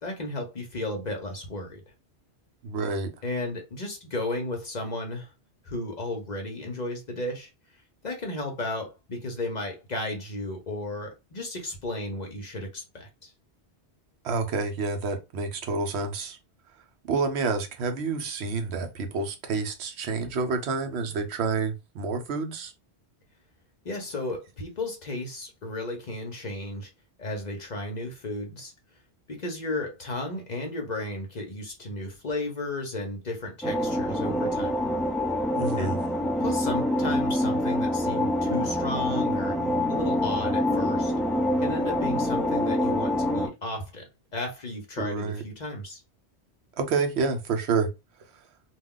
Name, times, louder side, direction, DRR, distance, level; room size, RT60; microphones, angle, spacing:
voice 1, 0.0-1.8 3.2-5.3 5.6-7.5 8.0-13.3 23.8-26.9 27.2-28.7 29.3-34.8 35.8-36.0 36.4-39.6 39.9-41.1 41.6-44.0 44.3-46.0, left 2 dB, 45° left, 0.8 m, -34 dB
voice 2, 2.6-3.1 14.2-16.4 17.0-22.7 35.5-36.0 45.0-45.4 46.8-47.9, right 4 dB, 75° right, 0.9 m, -28 dB
sound 1, 33.6-43.5, left 1 dB, ahead, 0.3 m, -26 dB
2.3 x 2.3 x 3.6 m
omnidirectional pair, 1.1 m